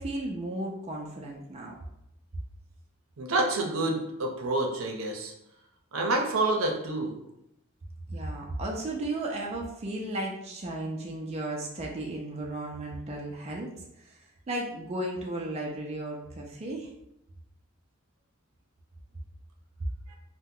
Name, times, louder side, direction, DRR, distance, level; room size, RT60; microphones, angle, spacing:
voice 1, 0.0-1.7 8.1-13.7 14.1-14.2 14.5-16.9, right 1 dB, 30° right, -1 dB, 0.4 m, -34 dB
voice 2, 3.2-5.3 5.9-7.1 20.1-20.2, right 2 dB, 80° right, 1 dB, 0.6 m, -28 dB
2.8 x 2.1 x 3.6 m, 0.82 s
head